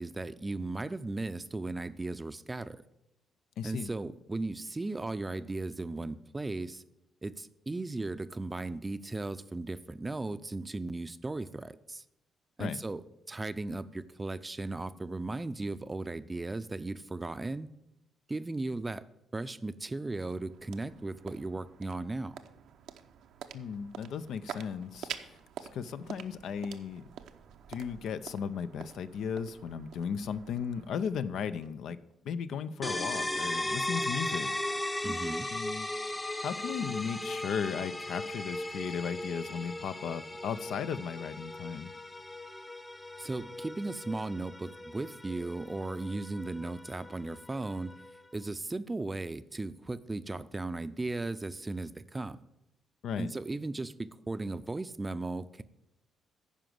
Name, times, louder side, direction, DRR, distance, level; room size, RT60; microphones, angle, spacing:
voice 1, 0.0-2.8 3.6-6.8 7.2-12.0 12.6-17.7 18.3-19.0 19.3-22.4 35.0-35.5 43.2-48.0 48.3-52.4 53.2-55.6, right 2 dB, 20° right, 14 dB, 0.5 m, -36 dB
voice 2, 3.6-3.9 12.6-12.8 23.5-27.0 27.7-32.0 32.2-34.5 35.5-35.9 36.1-41.9 53.0-53.3, left 7 dB, 75° left, 13 dB, 0.5 m, -36 dB
sound 1, 19.7-32.1, right 9 dB, 80° right, 0.7 m, -48 dB
sound 2, 32.8-48.4, left 1 dB, 15° left, 0.7 m, -37 dB
9.9 x 5.1 x 7.7 m, 0.87 s
cardioid pair, 90°, 0 cm